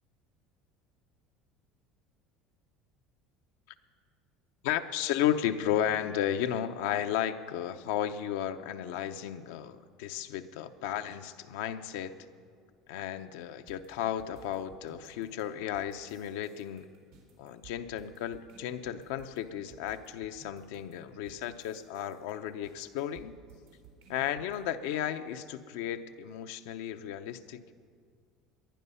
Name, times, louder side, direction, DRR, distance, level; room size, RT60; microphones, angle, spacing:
voice 1, 4.6-12.1 12.9-16.9 17.4-23.3 24.1-27.7, left 10 dB, 80° left, 8 dB, 0.7 m, -34 dB
sound 1, 13.7-24.6, right 5 dB, 90° right, 3.9 m, -56 dB
19.5 x 11.0 x 5.6 m, 2.1 s
supercardioid pair, 90°, 0 cm